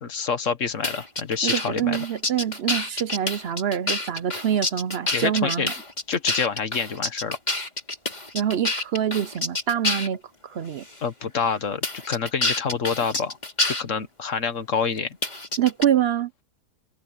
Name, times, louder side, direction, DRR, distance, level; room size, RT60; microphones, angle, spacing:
voice 1, 0.0-2.0 5.1-5.7 6.1-7.4 11.0-13.4 13.7-15.2, left 6 dB, 55° left, 1.6 m, -27 dB
sound 1, 0.8-10.2 10.8-11.0 11.8-13.8 15.2-15.8, left 2 dB, 25° left, 2.7 m, -27 dB
voice 2, 1.4-5.7 8.3-10.8 15.6-16.3, right 10 dB, 60° right, 0.6 m, -25 dB
omnidirectional pair, 1.6 m